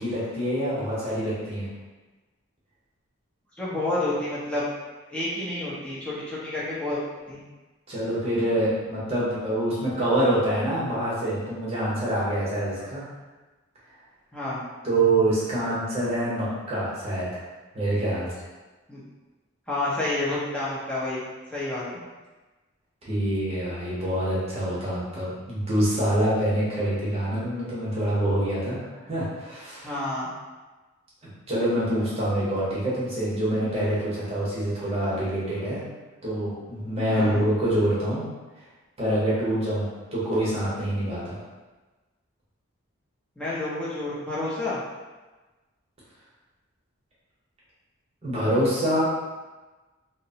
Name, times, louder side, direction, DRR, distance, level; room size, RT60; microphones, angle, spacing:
voice 1, 0.0-1.7 7.9-13.1 14.8-17.4 17.7-18.4 23.0-29.8 31.5-35.8 36.2-38.3 39.0-41.4 48.2-49.0, right 1 dB, 30° right, -8 dB, 0.8 m, -26 dB
voice 2, 3.6-4.6 5.1-7.0 7.3-7.4 14.3-14.6 18.9-19.0 19.7-21.2 21.5-22.0 29.8-30.3 37.1-37.4 43.4-44.8, left 2 dB, 5° left, -9 dB, 0.6 m, -29 dB
2.9 x 2.0 x 2.7 m, 1.2 s
head